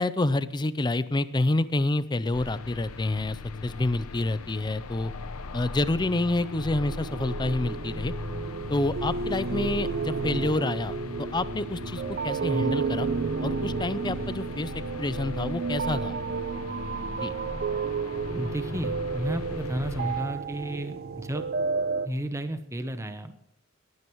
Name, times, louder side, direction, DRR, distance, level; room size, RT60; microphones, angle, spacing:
voice 1, 0.0-5.1 5.5-8.1 8.7-13.1 13.4-14.7 15.0-16.2 17.2-17.3, left 2 dB, 20° left, 15 dB, 0.5 m, -28 dB
sound 1, 2.3-20.2, left 3 dB, 90° left, 0.8 m, -38 dB
sound 2, 6.4-22.1, right 5 dB, 45° right, 0.5 m, -32 dB
voice 2, 18.3-21.5 22.0-23.3, right 1 dB, 15° right, 9 dB, 0.8 m, -32 dB
22.5 x 9.6 x 3.1 m, 0.75 s
head